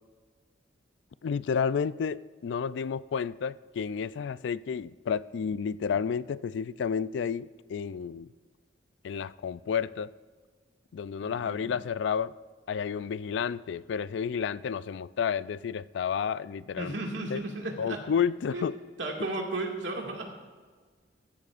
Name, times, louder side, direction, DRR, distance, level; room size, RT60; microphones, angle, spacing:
voice 1, 1.2-8.3 9.0-10.1 10.9-12.3 12.7-16.9 17.3-17.4 17.8-18.7, left 7 dB, 70° left, 17 dB, 0.3 m, -31 dB
voice 2, 11.2-11.7 16.8-18.0 18.5-18.7 19.0-20.2, right 2 dB, 80° right, 0 dB, 2.1 m, -34 dB
15.5 x 14.5 x 2.5 m, 1.5 s
head